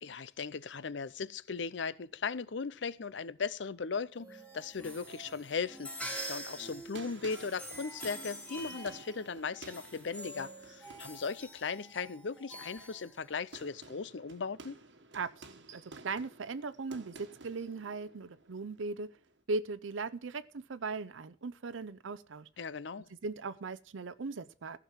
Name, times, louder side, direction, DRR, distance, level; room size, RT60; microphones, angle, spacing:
voice 1, 0.0-14.8 22.6-23.1, left 5 dB, 70° left, 0.6 m, -38 dB
sound 1, 4.2-13.7, equal, 5° left, 2.6 m, -46 dB
sound 2, 4.8-19.4, right 3 dB, 65° right, 1.3 m, -54 dB
voice 2, 15.1-19.1 19.5-22.5 23.2-24.8, right 3 dB, 85° right, 0.6 m, -38 dB
15.0 x 6.0 x 7.4 m
head